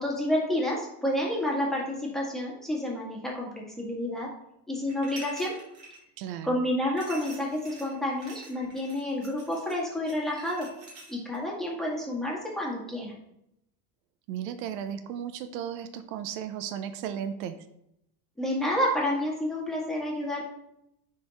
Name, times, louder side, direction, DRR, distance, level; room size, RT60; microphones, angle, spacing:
voice 1, 0.0-3.5 3.8-4.3 4.7-5.5 6.4-10.7 11.1-13.1 18.4-20.5, left 1 dB, ahead, -4 dB, 1.8 m, -29 dB
sound 1, 4.9-6.0 7.0-11.4, right 2 dB, 40° right, 2.2 m, -47 dB
voice 2, 6.2-6.6 14.3-17.6, right 9 dB, 80° right, 9 dB, 0.7 m, -35 dB
9.7 x 3.7 x 3.0 m, 0.80 s
supercardioid pair, 120°, 48 cm